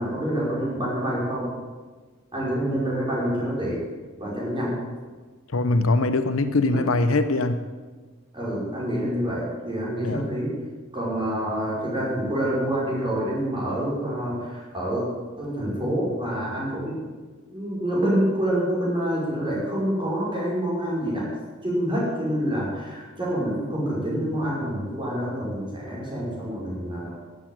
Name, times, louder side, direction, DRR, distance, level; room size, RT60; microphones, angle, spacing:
voice 1, 0.0-1.5 2.3-3.8 4.2-4.8 6.7-6.8 8.3-10.6 10.9-15.1 15.4-17.0 17.5-21.3 21.6-27.1, right 1 dB, 25° right, -5 dB, 5.7 m, -27 dB
voice 2, 5.5-7.6 10.0-10.2, left 2 dB, 70° left, 10 dB, 0.9 m, -22 dB
13.5 x 8.3 x 8.9 m, 1.4 s
head